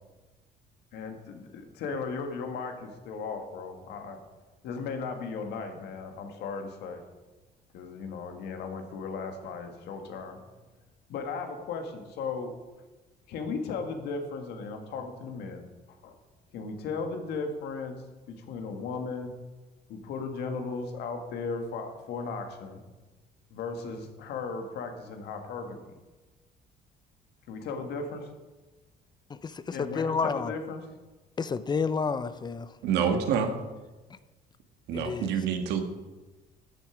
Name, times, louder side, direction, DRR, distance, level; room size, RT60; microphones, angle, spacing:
voice 1, 0.9-4.2 4.6-7.0 7.7-10.4 11.1-12.5 13.3-15.6 16.0-16.1 16.5-19.3 19.9-22.8 23.5-25.8 27.5-28.3 29.7-30.9, left 4 dB, 80° left, 5 dB, 1.8 m, -36 dB
voice 2, 29.4-30.5 31.4-32.7 34.9-35.3, left 5 dB, 25° left, 14 dB, 0.6 m, -30 dB
voice 3, 32.8-33.5 34.9-35.8, right 7 dB, 80° right, 6 dB, 1.6 m, -27 dB
13.0 x 7.9 x 5.0 m, 1.2 s
cardioid pair, 110°, 17 cm